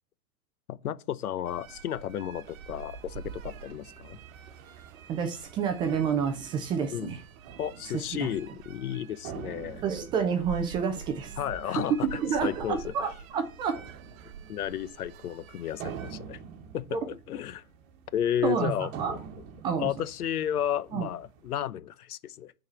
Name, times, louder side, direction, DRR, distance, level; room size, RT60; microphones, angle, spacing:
voice 1, 0.7-4.2 6.9-7.1 7.6-9.8 11.4-11.9 12.4-12.8 14.5-16.4 16.7-16.9 17.3-17.6 18.1-19.2 19.8-22.5, left 10 dB, 85° left, 0.8 m, -32 dB
sound 1, 1.4-16.1, right 7 dB, 65° right, 1.1 m, -46 dB
sound 2, 1.8-21.7, right 7 dB, 40° right, 1.6 m, -48 dB
voice 2, 5.1-7.2 7.8-8.3 9.8-11.4 11.6-11.9 12.1-13.8 16.9-17.1 18.4-19.2 19.6-19.9 20.9-21.1, right 6 dB, 10° right, 0.4 m, -29 dB
9.6 x 4.1 x 7.0 m
hypercardioid pair, 130°, 44 cm